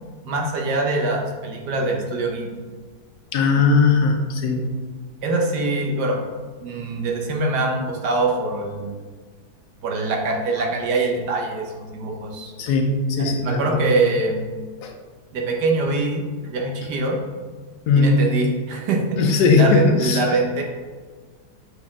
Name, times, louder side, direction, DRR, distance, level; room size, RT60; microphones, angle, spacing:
voice 1, 0.2-2.5 5.2-6.2 6.6-9.0 9.8-12.5 13.2-14.4 15.3-17.2 18.0-20.6, right 2 dB, 70° right, 1 dB, 1.5 m, -24 dB
voice 2, 3.3-4.7 12.6-13.8 14.8-14.9 17.9-18.2 19.2-20.2, left 4 dB, 70° left, 3 dB, 1.2 m, -18 dB
7.0 x 4.3 x 3.6 m, 1.4 s
omnidirectional pair, 1.9 m